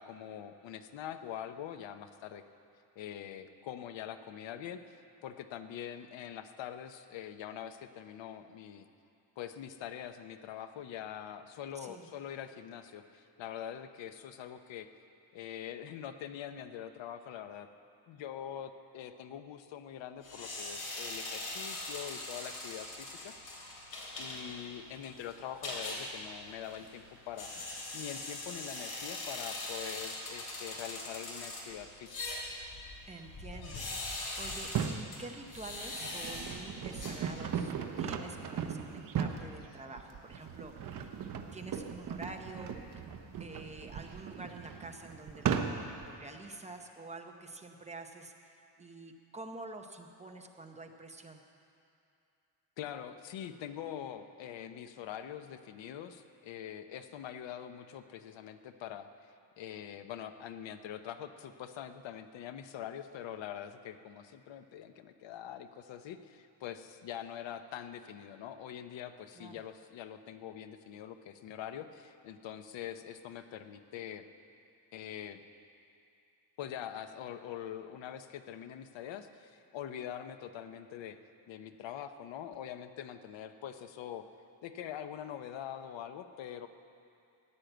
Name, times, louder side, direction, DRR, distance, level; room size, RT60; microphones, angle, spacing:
voice 1, 0.0-2.4 3.0-5.0 5.2-8.9 9.4-14.9 15.3-17.7 18.1-23.3 24.2-32.2 52.8-59.1 59.6-74.2 74.9-75.4 76.6-81.2 81.5-84.3 84.6-86.7, left 10 dB, 75° left, 9 dB, 0.9 m, -44 dB
voice 2, 11.7-12.1 33.1-37.7 38.0-41.1 41.5-42.7 43.4-51.4 69.4-69.5, right 2 dB, 15° right, 3 dB, 0.7 m, -47 dB
sound 1, 20.2-37.7, left 2 dB, 55° left, 3.2 m, -42 dB
sound 2, 34.6-35.1 35.7-46.1, right 7 dB, 45° right, 0.9 m, -37 dB
15.5 x 10.5 x 7.9 m, 2.6 s
cardioid pair, 180°, 45 cm